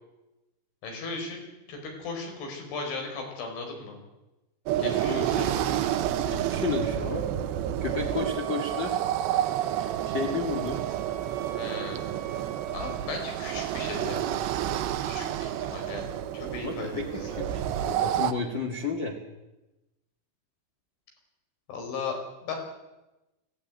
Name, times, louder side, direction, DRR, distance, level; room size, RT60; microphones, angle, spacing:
voice 1, 0.8-1.4 1.7-4.0 4.8-6.2 11.5-12.1 12.7-14.4 15.1-17.0 21.7-22.6, left 4 dB, 80° left, 2 dB, 7.3 m, -37 dB
sound 1, 4.7-18.3, right 11 dB, 75° right, 3.0 m, -29 dB
voice 2, 4.8-5.5 6.2-7.3 7.8-9.0 9.8-10.8 16.6-19.2, left 4 dB, 40° left, 1 dB, 1.7 m, -32 dB
Wind instrument woodwind instrument, 8.2-13.1, right 10 dB, 60° right, 3.1 m, -44 dB
19.0 x 16.5 x 9.3 m, 1.0 s
omnidirectional pair, 5.4 m